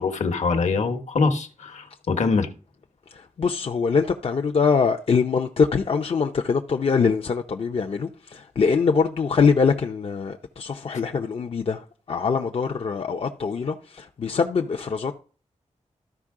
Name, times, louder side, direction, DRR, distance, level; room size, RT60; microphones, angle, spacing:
voice 1, 0.0-2.5, left 4 dB, 70° left, 1.2 m, -24 dB
voice 2, 3.1-15.2, left 5 dB, 50° left, 0.6 m, -23 dB
13.0 x 5.3 x 3.7 m
wide cardioid pair, 140°, 12 cm